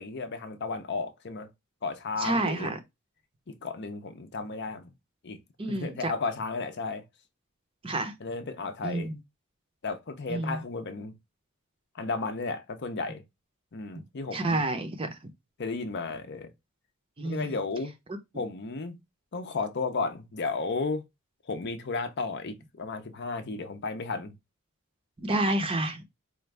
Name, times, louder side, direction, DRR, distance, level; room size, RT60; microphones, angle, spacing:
voice 1, 0.0-1.5 1.8-2.8 3.5-4.9 5.2-5.4 5.7-7.0 8.2-9.1 9.8-11.1 11.9-13.2 13.7-14.6 15.6-16.5 17.2-17.9 18.3-19.0 19.3-21.0 21.5-24.3, left 4 dB, 50° left, 0.6 m, -33 dB
voice 2, 2.2-2.8 5.6-6.1 7.8-8.1 8.8-9.1 10.3-10.6 14.3-15.2 17.2-17.5 25.2-26.0, right 2 dB, 25° right, 0.6 m, -29 dB
4.4 x 2.5 x 3.2 m
head